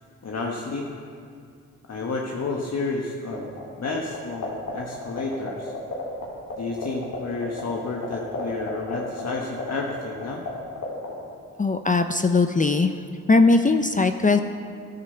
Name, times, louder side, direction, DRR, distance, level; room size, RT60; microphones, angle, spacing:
voice 1, 0.2-0.9 1.9-5.7 6.6-10.4, left 3 dB, 50° left, -1 dB, 1.4 m, -31 dB
sound 1, 3.3-3.9 4.1-6.2 6.5-6.6 6.8-10.5 10.8-11.1, left 4 dB, 65° left, 3.9 m, -31 dB
voice 2, 11.6-12.9 13.3-14.4, left 3 dB, 25° left, 8 dB, 0.6 m, -19 dB
11.5 x 9.6 x 6.8 m, 2.3 s
supercardioid pair, 55°, 33 cm